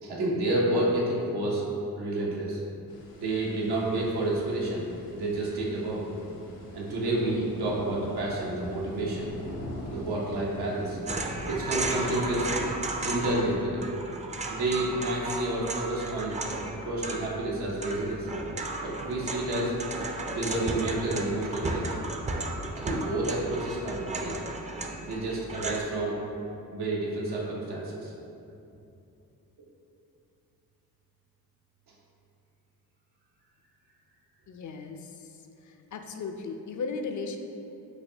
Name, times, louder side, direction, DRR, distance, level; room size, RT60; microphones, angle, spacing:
voice 1, 0.0-1.7 2.0-2.6 3.2-4.9 5.1-6.0 6.7-9.3 9.9-11.0 11.5-12.5 13.0-13.9 14.5-16.4 16.8-18.3 18.8-19.7 20.4-21.9 22.7-24.4 25.0-26.2 26.7-28.1, right 1 dB, 85° right, -5 dB, 1.0 m, -29 dB
sound 1, 2.9-13.6, left 1 dB, 70° left, 0.9 m, -43 dB
sound 2, 11.1-13.5 13.8-25.8, right 2 dB, 20° right, 0.4 m, -34 dB
voice 2, 34.5-35.3 35.7-37.4, left 4 dB, 50° left, 6 dB, 0.5 m, -36 dB
6.4 x 2.7 x 2.7 m, 2.7 s
cardioid pair, 55°, 38 cm